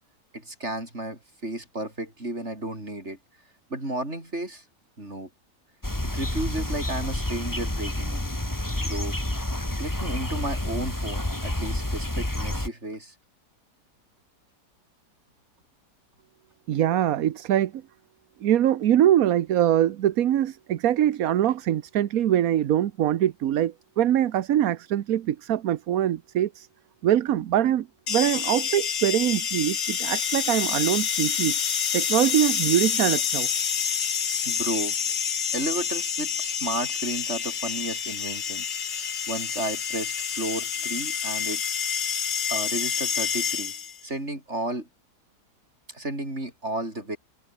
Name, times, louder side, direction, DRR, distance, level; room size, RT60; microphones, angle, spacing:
voice 1, 0.3-3.2 3.7-4.6 5.0-5.3 6.1-8.3 8.7-9.2 9.8-13.1 34.4-35.0 35.5-38.7 38.9-41.6 42.5-43.7 44.0-44.9 45.9-47.2, right 1 dB, 45° right, 7.4 m, -33 dB
sound 1, 5.8-12.7, left 1 dB, 10° left, 2.7 m, -29 dB
voice 2, 16.7-17.8 18.4-26.7 27.0-31.6 31.9-33.5, right 11 dB, 65° right, 1.2 m, -23 dB
sound 2, 28.1-44.0, left 7 dB, 75° left, 2.1 m, -28 dB
omnidirectional pair, 1.7 m